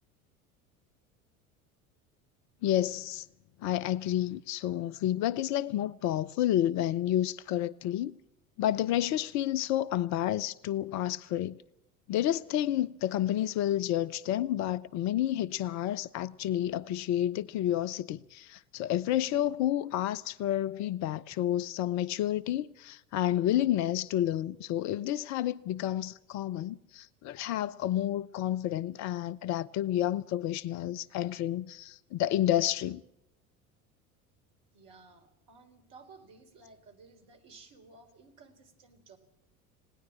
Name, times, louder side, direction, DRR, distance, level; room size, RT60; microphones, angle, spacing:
voice 1, 2.6-3.3 3.6-8.2 8.6-11.6 12.1-33.0, left 12 dB, 40° left, 0.7 m, -30 dB
voice 2, 34.7-39.2, right 4 dB, 45° right, 4.2 m, -55 dB
20.0 x 18.0 x 7.4 m
figure-of-eight pair, 70°, 43 cm